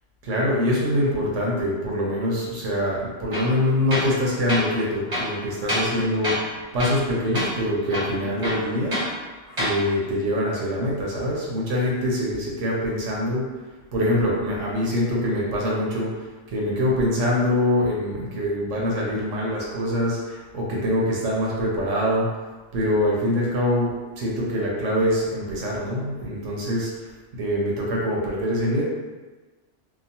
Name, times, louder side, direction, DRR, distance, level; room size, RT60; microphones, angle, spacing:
voice 1, 0.2-9.0 9.6-13.5 13.9-22.3 22.7-27.1 27.3-28.8, left 1 dB, 75° right, -4 dB, 1.0 m, -24 dB
Tools, 3.3-3.5 3.9-4.2 4.5-4.7 5.1-6.0 6.2-6.5 6.8-7.1 7.3-7.5 7.9-9.1 9.5-9.8, equal, 30° right, 0.8 m, -27 dB
2.9 x 2.2 x 2.7 m, 1.3 s
omnidirectional pair, 1.3 m